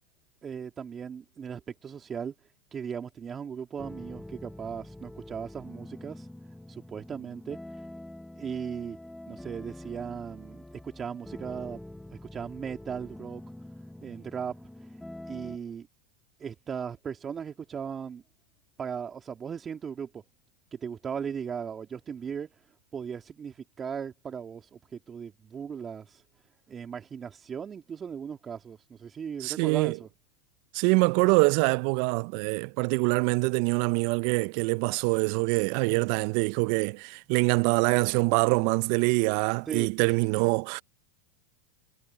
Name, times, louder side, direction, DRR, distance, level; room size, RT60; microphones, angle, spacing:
voice 1, 0.4-2.3 2.7-6.3 6.7-7.9 8.3-9.0 9.3-11.8 12.1-13.4 14.0-15.0 15.3-15.9 16.4-18.2 18.8-20.2 20.7-22.6 22.9-26.2 26.7-30.1 39.7-40.1, right 7 dB, 25° right, 2.5 m, -37 dB
sound 1, 3.8-15.6, left 1 dB, 5° left, 1.1 m, -45 dB
voice 2, 29.4-30.0 30.7-40.8, right 30 dB, 55° right, 0.6 m, -25 dB
hypercardioid pair, 95°, 0 cm